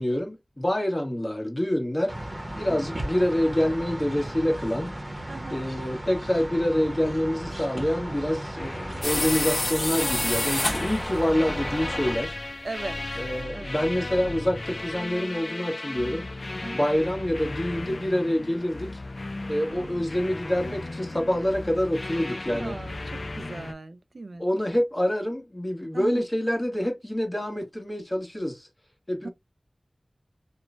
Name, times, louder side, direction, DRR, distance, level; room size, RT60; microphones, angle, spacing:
voice 1, 0.0-2.2 2.5-4.9 5.5-12.4 13.1-16.3 16.7-19.0 19.5-22.7 24.4-28.7 29.1-29.3, left 1 dB, 30° left, 1.2 m, -26 dB
sound 1, 2.1-12.1, right 1 dB, 35° right, 0.8 m, -35 dB
sound 2, 8.6-23.7, left 2 dB, 65° left, 0.3 m, -35 dB
sound 3, 9.0-11.2, left 1 dB, 50° left, 1.1 m, -28 dB
voice 2, 12.6-13.0 13.5-13.7 16.6-16.8 19.7-20.0 22.5-24.5 25.9-26.2 29.2-29.3, right 2 dB, 85° right, 0.3 m, -38 dB
3.0 x 2.1 x 2.4 m
wide cardioid pair, 40°, 0 cm